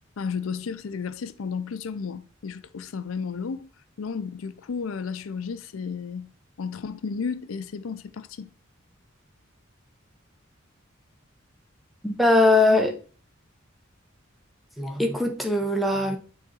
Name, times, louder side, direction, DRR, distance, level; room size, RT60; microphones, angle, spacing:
voice 1, 0.2-3.7 4.0-6.3 6.6-8.5, left 5 dB, 80° left, 0.5 m, -33 dB
voice 2, 12.0-13.0 14.8-16.2, left 2 dB, ahead, 0.8 m, -21 dB
6.1 x 3.9 x 4.1 m
head